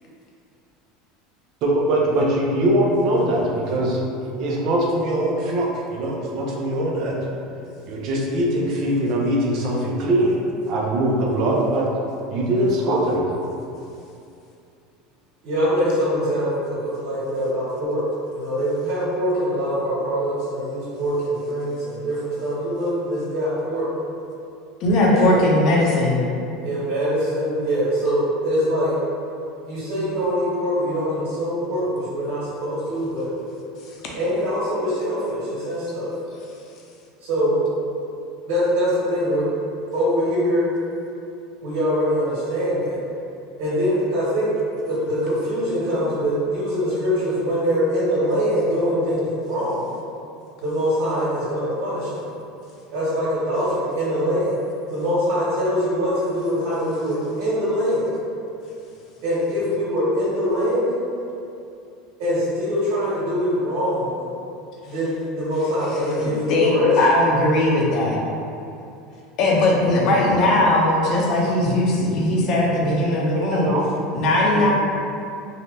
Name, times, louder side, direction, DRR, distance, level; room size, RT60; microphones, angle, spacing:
voice 1, 1.6-4.0 4.4-7.2 7.9-10.4 10.7-11.9 12.3-13.3 73.4-73.8, right 1 dB, 50° right, -2 dB, 0.5 m, -22 dB
voice 2, 15.4-18.0 18.3-23.9 25.1-25.4 26.6-28.9 29.6-33.3 34.1-36.1 37.2-37.7 38.5-39.5 39.9-40.7 41.6-43.0 43.6-44.5 44.8-49.8 50.6-52.2 52.9-54.6 54.9-58.1 59.2-60.9 62.2-64.2 64.9-66.9, equal, 75° right, -10 dB, 1.2 m, -23 dB
voice 3, 24.8-26.2 65.9-68.2 69.4-73.7 74.1-74.7, left 1 dB, 50° left, -3 dB, 0.6 m, -19 dB
2.7 x 2.2 x 3.2 m, 2.6 s
supercardioid pair, 125°, 0 cm